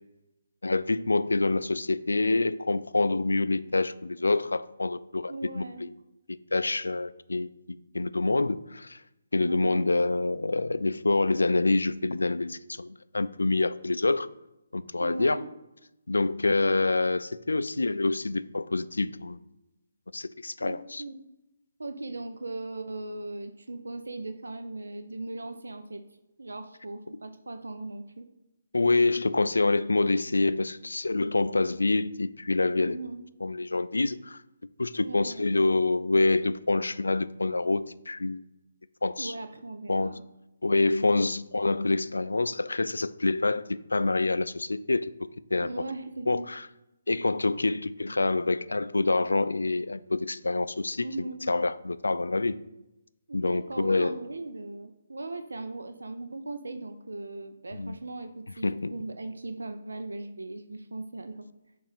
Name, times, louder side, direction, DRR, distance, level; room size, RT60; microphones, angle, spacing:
voice 1, 0.6-5.9 6.3-9.0 9.3-14.3 14.7-15.4 16.1-19.4 20.1-21.0 28.7-33.0 33.4-34.4 34.8-38.4 39.0-39.3 39.9-40.1 40.6-45.1 45.5-45.7 46.3-46.6 47.1-52.6 53.3-54.2 57.7-58.0 58.6-58.9, left 2 dB, 75° left, 14 dB, 0.3 m, -26 dB
voice 2, 5.3-5.8 9.4-9.9 15.0-15.5 20.6-21.2 21.8-26.0 26.4-28.3 32.8-33.2 34.9-35.5 39.2-40.2 45.6-46.5 51.0-51.4 53.3-61.5, right 2 dB, 75° right, 7 dB, 0.6 m, -38 dB
7.0 x 2.5 x 5.7 m, 0.93 s
figure-of-eight pair, 145°, 0 cm